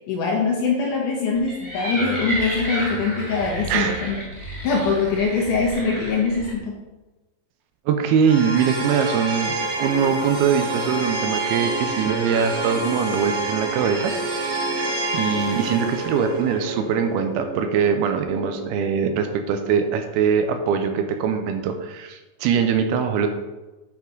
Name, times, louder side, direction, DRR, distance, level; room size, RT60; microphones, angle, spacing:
voice 1, 0.1-6.8, left 4 dB, 70° left, -2 dB, 2.1 m, -23 dB
sound 1, 1.3-6.5, right 1 dB, 20° right, 0.8 m, -31 dB
voice 2, 3.7-4.0 7.9-14.7 15.1-23.3, right 7 dB, 80° right, 7 dB, 2.4 m, -22 dB
sound 2, 8.2-19.3, right 2 dB, 65° right, 2.8 m, -28 dB
8.7 x 5.8 x 3.9 m, 1.1 s
omnidirectional pair, 4.8 m